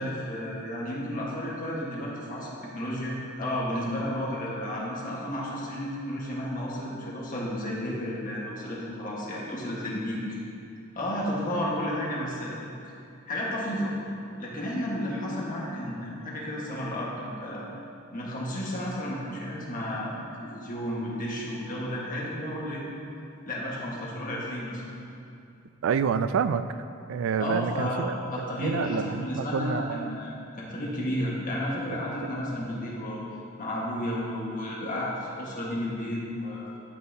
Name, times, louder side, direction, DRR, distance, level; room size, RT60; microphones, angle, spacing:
voice 1, 0.0-10.4 10.9-12.5 13.3-13.9 14.4-17.7 18.1-22.8 23.5-24.8 27.4-33.2 33.6-36.7, equal, 40° left, -5 dB, 1.4 m, -32 dB
voice 2, 25.8-26.8 27.1-30.2, right 6 dB, 65° right, 13 dB, 0.3 m, -28 dB
11.5 x 5.6 x 2.8 m, 2.6 s
head